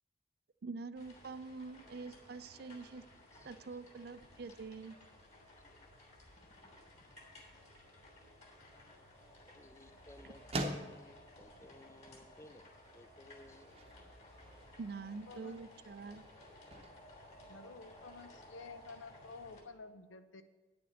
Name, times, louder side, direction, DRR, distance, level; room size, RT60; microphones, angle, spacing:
voice 1, 0.6-3.0 3.4-5.0 10.2-10.3 14.8-16.2, right 4 dB, 55° right, 13 dB, 0.4 m, -45 dB
sound 1, 0.9-19.6, left 1 dB, 35° left, 2.6 m, -58 dB
voice 2, 6.4-6.7 9.4-10.4 10.7-12.7 12.9-13.7, left 1 dB, 15° left, 11 dB, 0.4 m, -58 dB
sound 2, 8.5-18.3, right 1 dB, 30° right, 0.8 m, -48 dB
voice 3, 15.3-15.6 17.5-20.4, left 4 dB, 85° left, 10 dB, 0.7 m, -51 dB
9.5 x 7.0 x 6.4 m, 1.3 s
head